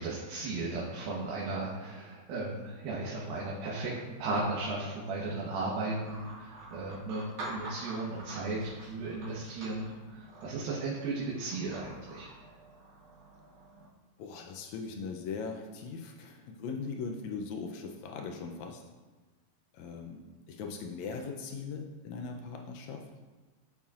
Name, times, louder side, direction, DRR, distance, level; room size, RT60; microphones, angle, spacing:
voice 1, 0.0-3.9 4.2-12.3, right 3 dB, 85° right, -5 dB, 2.9 m, -35 dB
sound 1, 6.0-13.9, right 2 dB, 60° right, 3.5 m, -47 dB
voice 2, 14.2-18.8 19.7-23.1, left 5 dB, 90° left, 2 dB, 1.6 m, -40 dB
12.5 x 7.1 x 2.5 m, 1.3 s
omnidirectional pair, 4.1 m